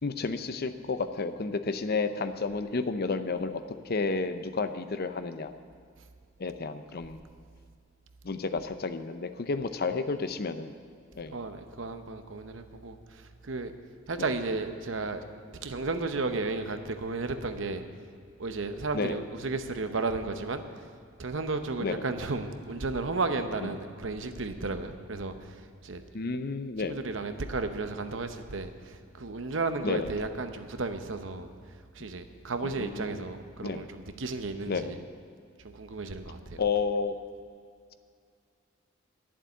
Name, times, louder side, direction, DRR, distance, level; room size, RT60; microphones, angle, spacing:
voice 1, 0.0-5.5 6.4-7.2 8.2-10.7 11.2-11.4 14.2-14.3 18.9-19.2 21.8-21.9 23.6-23.7 26.1-27.0 29.8-30.1 32.6-33.2 33.6-33.9 34.7-34.9 36.6-37.2, left 4 dB, 50° left, 10 dB, 0.6 m, -31 dB
voice 2, 11.3-13.7 14.1-15.2 15.6-17.8 18.4-20.6 21.2-26.0 26.8-31.5 31.9-35.0 35.6-36.6, right 3 dB, 65° right, 8 dB, 0.8 m, -33 dB
11.0 x 7.5 x 9.2 m, 2.3 s
head